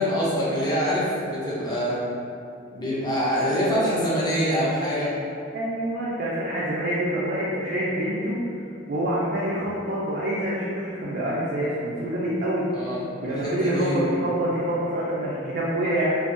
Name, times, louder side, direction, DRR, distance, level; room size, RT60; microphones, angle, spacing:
voice 1, 0.0-2.0 2.7-5.1 12.7-14.2, equal, 20° left, -8 dB, 0.5 m, -25 dB
voice 2, 5.5-8.4 8.9-12.7 13.2-16.2, right 1 dB, 45° right, -7 dB, 0.3 m, -26 dB
2.6 x 2.2 x 2.4 m, 2.5 s
head